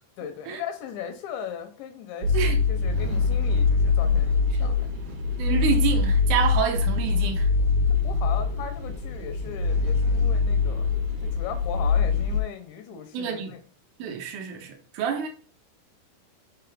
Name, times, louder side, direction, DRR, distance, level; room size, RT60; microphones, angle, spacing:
voice 1, 0.2-5.0 7.9-10.9 11.2-13.6, left 8 dB, 80° left, 3.0 m, -38 dB
sound 1, 2.2-12.4, left 4 dB, 60° right, 2.1 m, -23 dB
voice 2, 5.4-7.5 13.1-13.5 14.0-15.3, right 7 dB, 80° right, 1.7 m, -28 dB
6.9 x 5.2 x 3.6 m
omnidirectional pair, 5.4 m